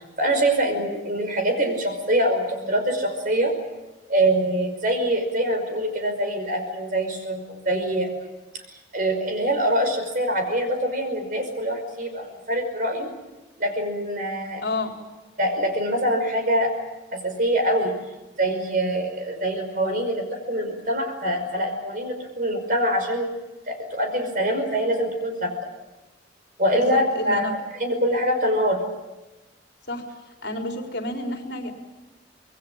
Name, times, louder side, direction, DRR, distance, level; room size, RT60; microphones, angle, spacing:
voice 1, 0.2-3.5 4.1-8.1 8.9-13.1 13.6-14.6 15.4-16.7 17.1-17.9 18.4-23.3 23.7-25.5 26.6-28.8, right 1 dB, 45° right, 5 dB, 5.5 m, -24 dB
voice 2, 14.6-15.0 26.7-27.6 29.9-30.0 30.4-31.7, left 1 dB, 60° left, 2 dB, 4.1 m, -29 dB
26.0 x 21.0 x 8.8 m, 1.1 s
head